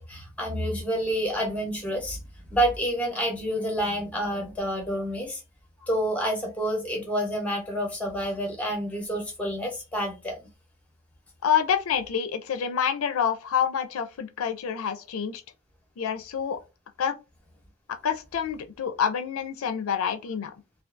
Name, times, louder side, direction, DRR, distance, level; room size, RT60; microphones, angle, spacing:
voice 1, 0.0-2.2 2.5-5.4 5.9-10.5, equal, 5° left, 0.7 m, -28 dB
voice 2, 11.4-15.4 16.0-16.6 17.0-17.2 17.9-20.5, left 7 dB, 80° left, 0.4 m, -27 dB
2.5 x 2.3 x 2.4 m
head